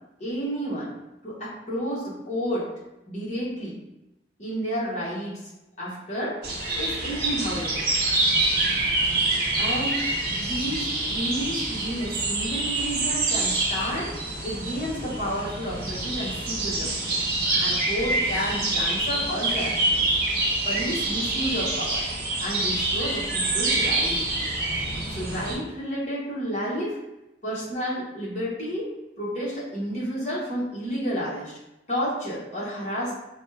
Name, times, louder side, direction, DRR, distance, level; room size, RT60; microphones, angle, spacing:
voice 1, 0.2-0.9 1.2-2.6 3.1-3.8 4.4-5.3 5.8-6.3 6.7-7.9 9.6-10.0 10.4-14.1 14.4-17.2 17.6-20.1 20.6-22.0 22.4-24.2 25.1-27.0 27.4-28.9 29.2-31.5 31.9-33.1, equal, 40° left, -7 dB, 1.3 m, -31 dB
sound 1, 6.4-25.6, right 2 dB, 60° right, 0.9 m, -26 dB
4.0 x 2.4 x 3.3 m, 0.93 s
head